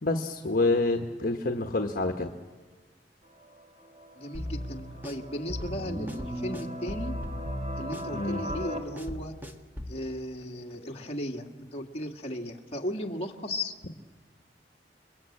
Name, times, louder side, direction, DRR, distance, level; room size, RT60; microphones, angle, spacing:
voice 1, 0.0-2.3 8.1-8.5, left 2 dB, 55° left, 4 dB, 1.3 m, -27 dB
sound 1, 3.2-8.8, equal, 35° right, 3.1 m, -41 dB
voice 2, 4.2-7.2 7.7-9.3 9.9-13.7, left 1 dB, 35° left, 0 dB, 2.1 m, -36 dB
sound 2, 4.3-10.0, equal, 10° right, 1.5 m, -37 dB
28.5 x 22.0 x 8.7 m, 1.5 s
head